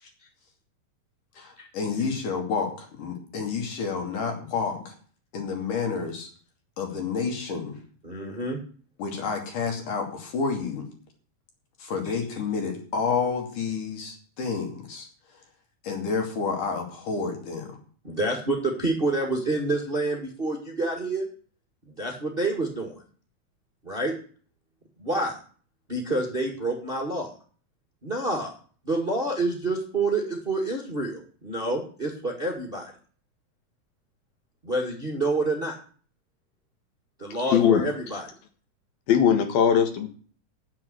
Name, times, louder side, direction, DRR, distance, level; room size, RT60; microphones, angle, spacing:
voice 1, 1.4-4.9 5.3-6.3 6.8-7.8 9.0-10.9 11.8-15.1 15.8-17.7, left 5 dB, 60° left, 3 dB, 4.0 m, -29 dB
voice 2, 8.0-8.6 12.0-12.2 18.0-21.3 21.8-22.9 23.8-24.1 25.0-25.4 25.9-27.3 28.0-28.5 28.8-32.9 34.6-35.8 37.2-38.3, right 2 dB, 20° right, 1 dB, 1.5 m, -28 dB
voice 3, 37.5-37.8 39.1-40.1, left 8 dB, 80° left, 6 dB, 3.3 m, -19 dB
9.5 x 7.5 x 9.3 m, 0.44 s
omnidirectional pair, 4.2 m